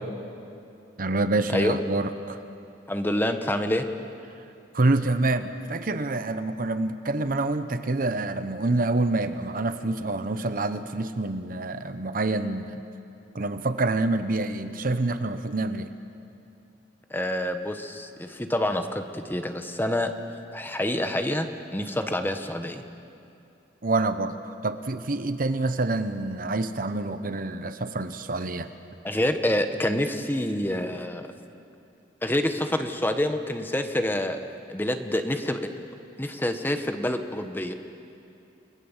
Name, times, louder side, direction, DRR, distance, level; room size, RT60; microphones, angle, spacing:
voice 1, 1.0-2.4 4.7-12.8 13.3-15.9 23.8-28.7, right 2 dB, 50° right, 10 dB, 0.9 m, -27 dB
voice 2, 2.9-3.9 17.1-20.1 20.5-21.5 21.7-22.8 29.0-31.3 32.2-34.4 34.7-35.6 36.2-37.7, left 1 dB, 10° left, 7 dB, 1.2 m, -27 dB
29.5 x 19.5 x 7.3 m, 2.6 s
head